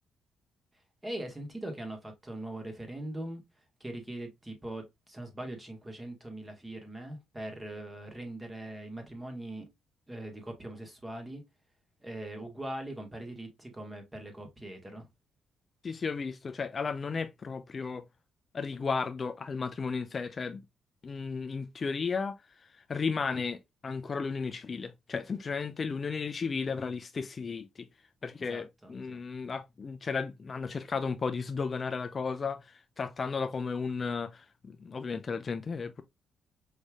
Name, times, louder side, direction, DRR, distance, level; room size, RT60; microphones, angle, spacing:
voice 1, 1.0-3.4 3.8-9.7 10.1-11.4 12.0-15.1 28.5-29.2, right 1 dB, 15° right, 1.6 m, -41 dB
voice 2, 15.8-18.1 18.5-20.6 21.0-27.9 28.2-36.0, left 5 dB, 40° left, 0.4 m, -34 dB
5.3 x 3.2 x 2.3 m
cardioid pair, 90°, 0 cm